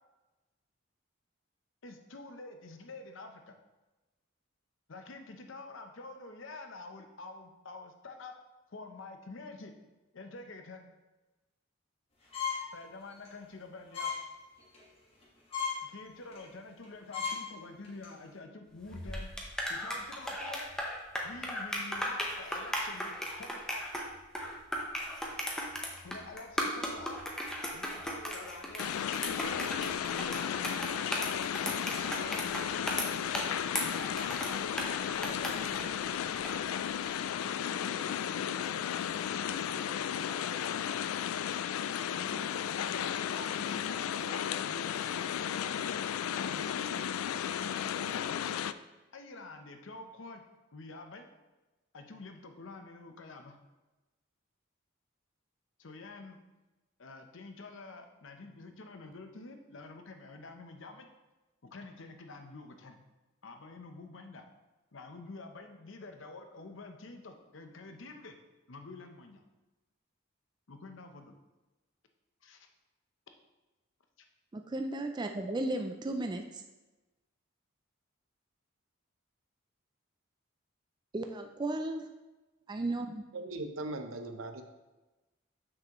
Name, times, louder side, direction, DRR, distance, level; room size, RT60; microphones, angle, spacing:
voice 1, 1.8-3.6 4.9-8.3 8.7-9.7 10.1-10.9 12.7-14.1 15.8-19.3 19.7-20.7 21.2-23.1 23.4-23.8 26.0-27.2 27.7-30.8 31.6-32.5 33.8-36.0 37.4-38.9 39.1-40.4 42.1-46.0 46.3-47.0 47.6-48.3 49.1-50.4 50.7-51.3 51.9-53.5 55.8-56.4 57.0-61.1 61.6-63.0 63.4-64.4 64.9-68.4 68.7-69.4 70.7-71.4 72.4-72.7, left 3 dB, 65° left, 6 dB, 0.7 m, -47 dB
sound 1, 12.3-12.7 13.1-13.3 13.9-14.2 14.6-14.8 15.2-15.3 15.5-15.8 16.3-16.5 16.8-16.9 17.1-17.4 17.8-18.1, left 6 dB, 30° left, 1.5 m, -35 dB
sound 2, 18.8-36.6, equal, 5° left, 0.8 m, -37 dB
sound 3, 28.8-48.7, left 9 dB, 85° left, 0.3 m, -34 dB
voice 2, 74.5-76.4 81.1-82.1 82.7-83.2, right 2 dB, 20° right, 5 dB, 0.3 m, -34 dB
voice 3, 83.3-84.6, right 2 dB, 75° right, 6 dB, 0.7 m, -39 dB
7.5 x 6.1 x 3.0 m, 1.1 s
head